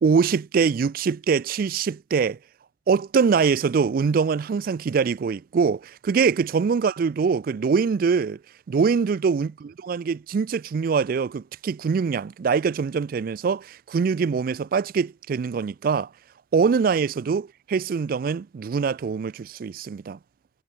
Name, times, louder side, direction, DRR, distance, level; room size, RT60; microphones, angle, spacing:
voice 1, 0.0-2.4 2.9-8.4 8.7-16.1 16.5-20.2, right 5 dB, 50° right, 0.3 m, -23 dB
head